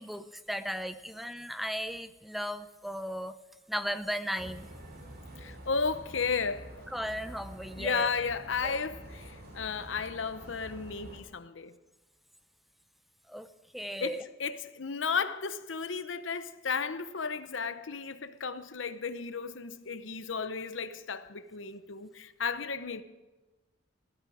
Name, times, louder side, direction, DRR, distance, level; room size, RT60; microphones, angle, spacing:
voice 1, 0.0-3.4 3.7-4.7 6.9-8.1 8.6-8.8 13.3-13.5 13.7-14.2, equal, ahead, 0.5 m, -36 dB
sound 1, 4.4-11.2, right 1 dB, 55° right, 3.3 m, -47 dB
voice 2, 5.4-6.7 7.8-11.7 14.0-23.0, left 5 dB, 85° left, 0.9 m, -34 dB
17.0 x 12.5 x 4.9 m
head